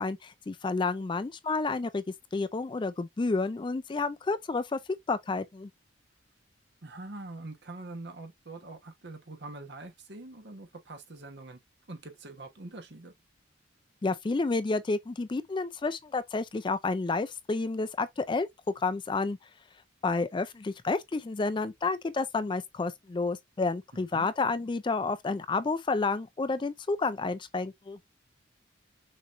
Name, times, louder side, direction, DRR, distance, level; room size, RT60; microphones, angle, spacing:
voice 1, 0.0-2.0 2.3-4.8 5.1-5.7 14.0-18.5 18.8-19.4 20.0-28.0, left 3 dB, 25° left, 0.3 m, -30 dB
voice 2, 6.8-11.6 11.9-13.1 24.1-24.3, right 2 dB, 55° right, 1.2 m, -44 dB
6.4 x 3.0 x 2.5 m
head